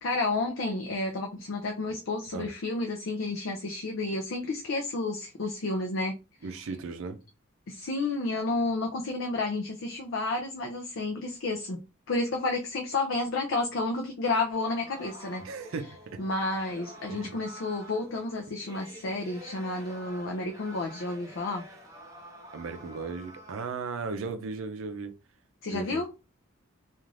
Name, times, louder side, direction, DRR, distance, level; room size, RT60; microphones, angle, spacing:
voice 1, 0.0-6.2 7.7-15.5 16.2-21.7 25.6-26.1, left 2 dB, 65° left, 0.5 m, -31 dB
voice 2, 6.4-7.2 15.4-16.2 17.1-17.3 22.5-25.1 25.7-26.0, right 4 dB, 85° right, 0.5 m, -36 dB
sound 1, 14.5-23.7, equal, 15° right, 0.6 m, -48 dB
2.5 x 2.4 x 3.1 m
head